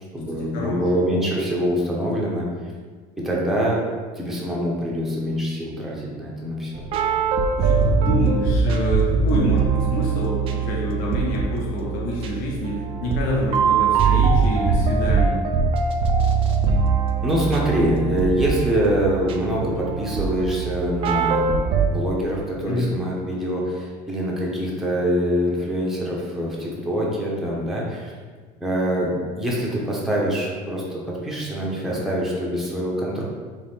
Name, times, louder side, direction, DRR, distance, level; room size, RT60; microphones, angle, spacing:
voice 1, 0.1-2.5 3.2-3.8 4.2-6.7 17.2-28.1 28.6-33.2, equal, ahead, -5 dB, 0.7 m, -24 dB
sound 1, 6.7-21.9, right 5 dB, 35° right, 0.3 m, -22 dB
voice 2, 7.6-15.5 22.7-22.9 31.9-32.0, left 1 dB, 60° left, -4 dB, 1.1 m, -27 dB
4.1 x 3.1 x 3.5 m, 1.5 s
cardioid pair, 165°, 16 cm